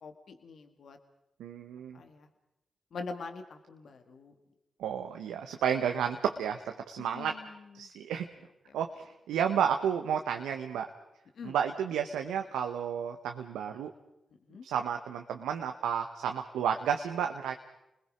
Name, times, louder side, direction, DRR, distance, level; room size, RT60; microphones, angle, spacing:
voice 1, 0.0-1.0 1.9-2.3 2.9-4.3 7.0-7.9 8.7-8.8 11.4-11.6 14.5-14.7, left 4 dB, 70° left, 6 dB, 1.9 m, -44 dB
voice 2, 1.4-2.0 4.8-7.4 7.7-8.3 8.7-8.9 9.3-10.9 11.4-13.9 14.6-17.5, right 8 dB, 90° right, 5 dB, 1.0 m, -31 dB
30.0 x 21.0 x 5.1 m, 0.89 s
supercardioid pair, 40°, 0 cm